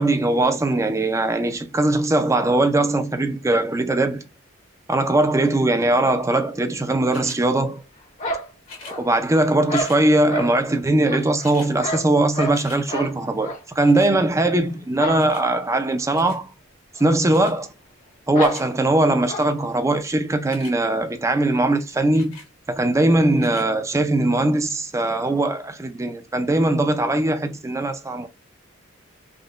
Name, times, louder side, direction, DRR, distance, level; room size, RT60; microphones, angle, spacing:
voice 1, 0.0-4.2 4.9-7.8 9.0-16.5 17.0-17.7 18.3-22.4 22.7-28.3, right 2 dB, 15° right, 0.4 m, -20 dB
sound 1, 7.1-7.4 8.6-9.0 9.7-10.0 11.0-11.1 11.2-11.7 12.1-12.8 13.8-14.1 15.2-15.5 16.1-16.4 17.3-17.6 18.2-18.7 20.4-20.8 22.1-22.5 23.3-23.7 24.3-24.4, left 4 dB, 80° left, 1.4 m, -43 dB
sound 2, 8.2-9.2 9.7-10.5 11.1-12.6 12.9-13.1 13.4-13.6 13.9-14.1 15.0-15.3 15.5-15.6 16.0-16.1 16.9-17.1 17.3-17.4 18.3-18.6 19.3-19.5, equal, 35° left, 0.7 m, -29 dB
3.6 x 2.1 x 2.4 m
head